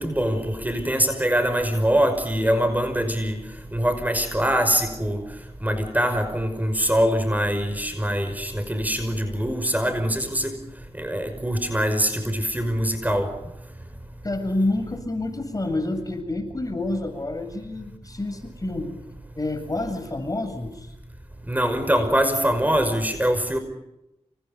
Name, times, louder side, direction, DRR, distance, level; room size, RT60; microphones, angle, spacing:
voice 1, 0.0-3.4 3.7-5.2 5.6-10.6 11.0-13.3 21.5-23.6, equal, 15° right, 5.7 m, -23 dB
voice 2, 14.2-18.9 19.3-20.9, left 2 dB, 30° left, 7.6 m, -28 dB
30.0 x 29.0 x 5.3 m
cardioid pair, 55°, 12 cm